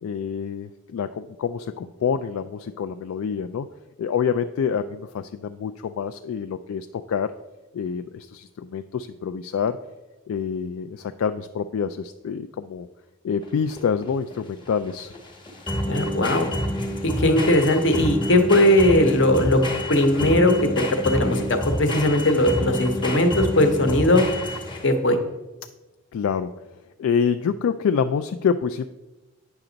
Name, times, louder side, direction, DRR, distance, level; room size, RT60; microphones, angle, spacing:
voice 1, 0.0-3.7 4.0-7.3 7.7-9.8 10.3-12.9 13.2-15.1 26.1-26.5 27.0-28.9, left 6 dB, 75° left, 9 dB, 0.3 m, -26 dB
sound 1, 13.4-25.0, left 1 dB, 20° left, 1.0 m, -28 dB
voice 2, 15.9-16.5 17.0-19.6 19.9-20.5 21.0-24.2 24.8-25.2, left 1 dB, 55° left, 7 dB, 0.9 m, -19 dB
8.7 x 5.9 x 3.9 m, 1.1 s
head